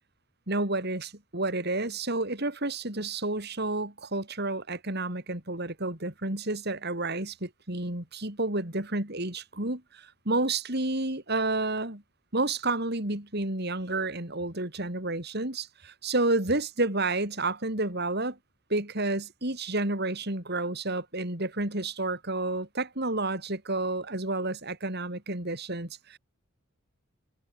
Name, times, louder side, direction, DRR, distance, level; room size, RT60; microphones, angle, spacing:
voice 1, 0.5-12.0 12.3-18.4 18.7-26.2, right 2 dB, 50° right, 4.2 m, -30 dB
head